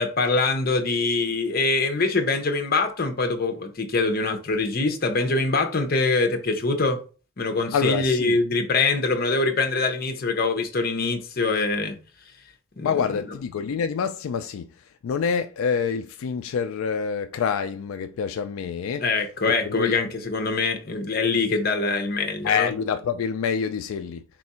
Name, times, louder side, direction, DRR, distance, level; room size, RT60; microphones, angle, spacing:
voice 1, 0.0-7.0 7.4-12.0 12.8-13.0 19.0-22.7, left 3 dB, 45° left, 0.7 m, -24 dB
voice 2, 7.7-8.4 12.8-14.7 15.0-19.0 19.5-20.0 21.5-21.6 22.4-24.2, left 6 dB, 80° left, 0.3 m, -26 dB
4.4 x 2.5 x 4.2 m
head